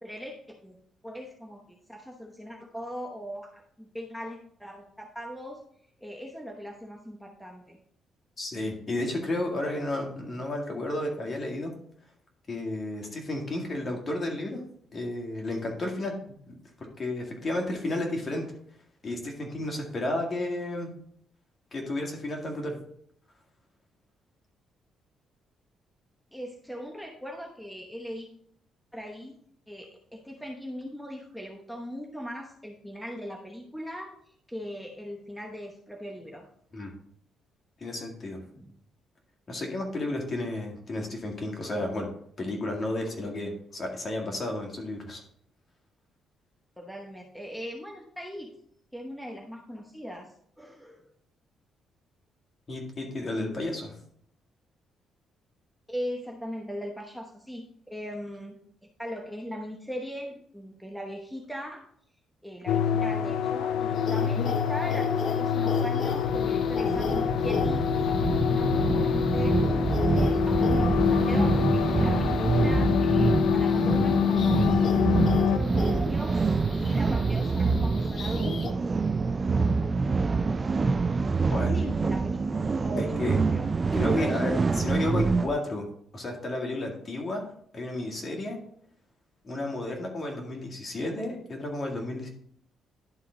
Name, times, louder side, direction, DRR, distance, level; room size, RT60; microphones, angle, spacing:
voice 1, 0.0-0.8 1.0-5.6 6.0-7.8 26.3-28.3 28.9-29.4 29.7-36.5 38.5-38.8 46.8-48.5 48.9-51.0 55.9-58.6 59.0-61.8 62.4-69.6 70.1-74.8 75.5-78.8 81.4-83.7 84.2-84.4, equal, ahead, 1 dB, 0.9 m, -39 dB
voice 2, 8.4-11.7 12.5-14.6 14.9-16.1 16.5-16.6 17.0-18.4 19.0-20.9 21.7-22.8 36.7-36.9 37.8-38.4 39.5-42.1 42.4-45.2 52.7-53.9 81.5-81.9 83.0-83.3 83.9-85.9 86.1-87.4 87.7-88.6 89.4-92.3, left 1 dB, 40° left, 1 dB, 1.9 m, -32 dB
sound 1, 62.7-75.6, left 8 dB, 85° left, 0.4 m, -26 dB
sound 2, 63.9-78.7, left 4 dB, 55° left, 0.8 m, -36 dB
sound 3, 66.0-85.5, right 4 dB, 30° right, 0.3 m, -26 dB
11.0 x 3.8 x 3.8 m, 0.66 s
cardioid pair, 90°, 0 cm